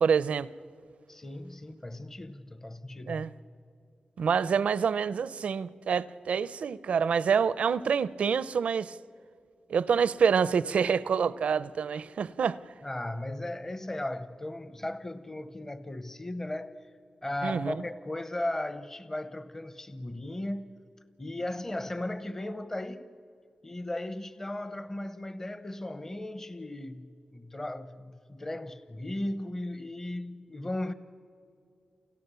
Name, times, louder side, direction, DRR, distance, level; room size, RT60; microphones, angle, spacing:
voice 1, 0.0-0.5 3.1-3.3 4.2-8.9 9.7-12.6 17.4-17.7, right 6 dB, 85° right, 0.6 m, -27 dB
voice 2, 1.1-3.3 12.8-16.7 17.2-20.8 21.2-23.1 23.6-30.9, left 1 dB, 20° left, 0.9 m, -36 dB
29.5 x 29.5 x 6.9 m
wide cardioid pair, 115°, 2 cm